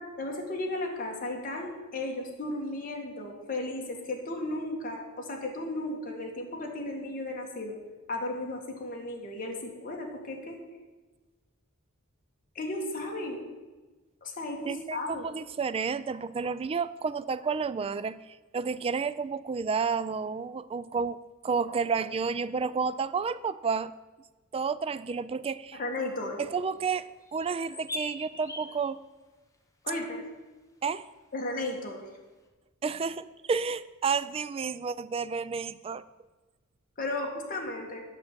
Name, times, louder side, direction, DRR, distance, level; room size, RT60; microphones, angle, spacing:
voice 1, 0.0-7.8 8.1-10.6 12.6-13.4 14.2-15.3 25.7-26.4 29.8-30.2 31.3-32.0 37.0-38.0, left 2 dB, 40° left, 0 dB, 1.9 m, -35 dB
voice 2, 14.6-18.2 18.5-21.2 21.4-23.9 24.5-25.8 26.4-29.0 30.8-31.0 32.8-36.0, right 5 dB, 25° right, 15 dB, 0.3 m, -31 dB
sound 1, 27.0-28.8, left 2 dB, 15° left, 1.2 m, -41 dB
9.5 x 6.5 x 7.5 m, 1.2 s
head